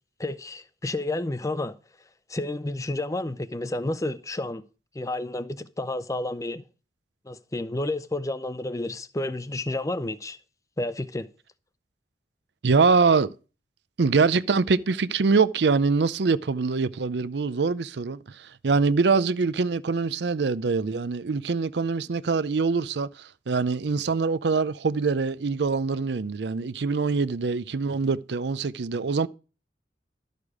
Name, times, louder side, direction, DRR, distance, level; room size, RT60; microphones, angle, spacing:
voice 1, 0.2-1.8 2.3-4.6 4.9-6.6 7.3-10.4 10.8-11.3, left 2 dB, 20° left, 0.6 m, -30 dB
voice 2, 12.6-13.3 14.0-29.3, right 4 dB, 70° right, 0.5 m, -24 dB
12.5 x 6.7 x 4.9 m
head